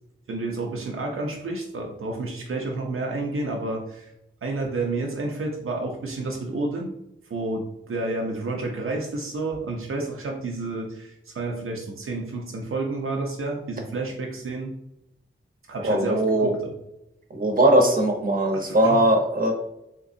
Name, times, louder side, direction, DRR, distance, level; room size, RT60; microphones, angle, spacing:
voice 1, 0.3-4.1 4.4-6.9 7.2-14.8 15.7-16.8 18.5-19.0, right 2 dB, 80° right, 0 dB, 0.5 m, -30 dB
voice 2, 15.8-16.5 17.3-19.5, right 1 dB, 40° right, 2 dB, 0.8 m, -20 dB
3.6 x 2.9 x 2.6 m, 0.83 s
wide cardioid pair, 100°, 21 cm